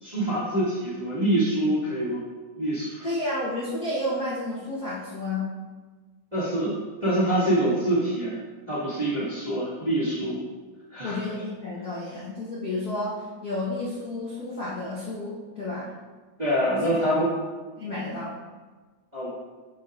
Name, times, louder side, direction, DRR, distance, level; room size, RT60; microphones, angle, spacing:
voice 1, 0.0-2.2 2.6-3.0 6.3-6.7 7.0-8.3 8.7-10.4 10.9-11.2 16.4-17.3 19.1-19.3, right 1 dB, 20° right, -10 dB, 1.5 m, -25 dB
voice 2, 3.0-5.5 11.0-15.9 16.8-16.9 17.8-18.3, left 1 dB, 60° left, -8 dB, 1.0 m, -31 dB
10.5 x 5.0 x 2.5 m, 1.3 s
omnidirectional pair, 3.5 m